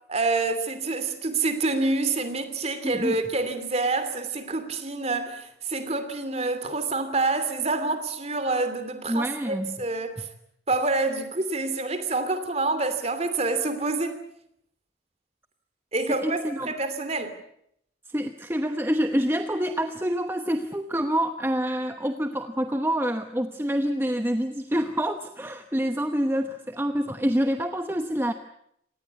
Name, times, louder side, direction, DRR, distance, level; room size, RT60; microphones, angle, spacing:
voice 1, 0.1-10.3 10.7-14.2 15.9-17.3, right 3 dB, 35° right, 2.9 m, -27 dB
voice 2, 2.8-3.2 9.1-9.7 16.1-16.7 18.1-28.3, equal, 10° right, 1.0 m, -27 dB
27.0 x 18.5 x 8.3 m
head